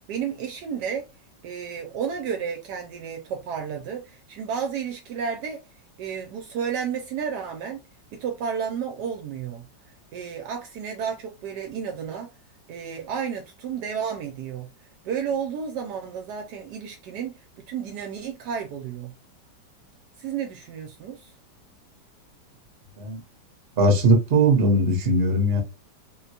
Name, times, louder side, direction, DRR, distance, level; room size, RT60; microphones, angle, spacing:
voice 1, 0.1-1.1 1.4-5.6 6.0-7.9 8.1-9.6 10.1-12.3 12.7-14.7 15.0-19.1 20.2-21.3, right 7 dB, 75° right, 1.1 m, -32 dB
voice 2, 23.8-25.6, right 1 dB, 45° right, 0.9 m, -19 dB
3.7 x 2.1 x 2.7 m
omnidirectional pair, 1.9 m